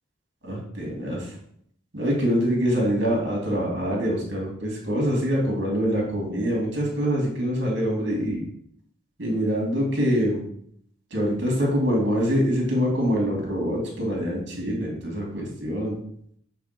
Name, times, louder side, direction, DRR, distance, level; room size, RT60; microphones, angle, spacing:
voice 1, 0.4-1.3 1.9-8.4 9.2-10.4 11.1-16.0, equal, 60° right, -1 dB, 2.6 m, -25 dB
8.1 x 3.5 x 5.2 m, 0.67 s
head